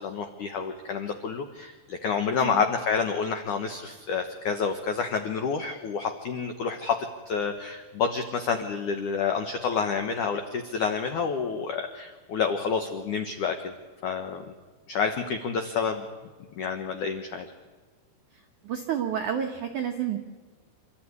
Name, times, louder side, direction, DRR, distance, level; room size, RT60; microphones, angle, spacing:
voice 1, 0.0-7.0 7.3-13.7 14.0-14.4 14.9-16.1 16.6-17.5, left 6 dB, 85° left, 6 dB, 1.7 m, -29 dB
voice 2, 18.6-20.2, right 9 dB, 85° right, 5 dB, 1.7 m, -29 dB
27.5 x 13.5 x 9.6 m, 1.4 s
omnidirectional pair, 5.5 m